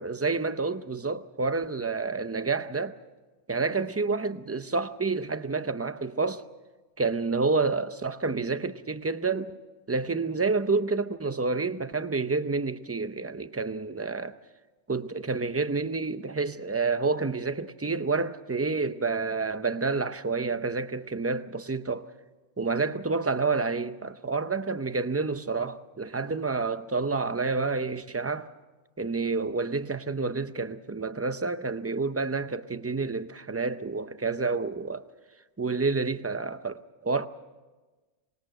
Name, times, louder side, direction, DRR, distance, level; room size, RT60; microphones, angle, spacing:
voice 1, 0.0-3.0 3.5-6.5 7.0-9.6 9.9-14.4 14.9-22.1 22.6-28.5 29.0-35.1 35.6-37.3, right 4 dB, 20° right, 0.4 m, -29 dB
25.5 x 20.5 x 6.5 m
omnidirectional pair, 1.2 m